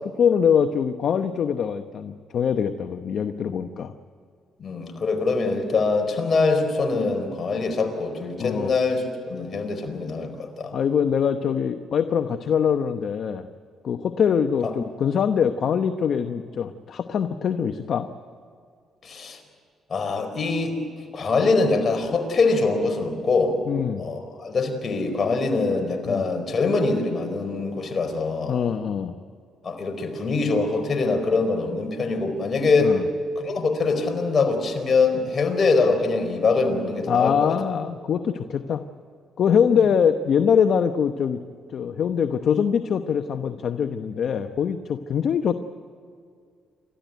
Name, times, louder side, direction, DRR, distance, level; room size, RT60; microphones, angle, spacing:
voice 1, 0.2-3.9 8.4-8.7 10.7-13.5 13.8-18.1 23.7-24.0 26.1-26.3 28.5-29.1 32.8-33.1 37.1-38.8 39.4-41.4 41.7-45.5, left 7 dB, 60° left, 8 dB, 0.9 m, -23 dB
voice 2, 4.6-10.7 19.0-19.4 19.9-20.8 21.1-23.6 24.0-28.6 29.6-33.0 33.4-37.6, left 3 dB, 45° left, 5 dB, 4.5 m, -23 dB
29.0 x 14.0 x 9.3 m, 2.2 s
cardioid pair, 90°, 0 cm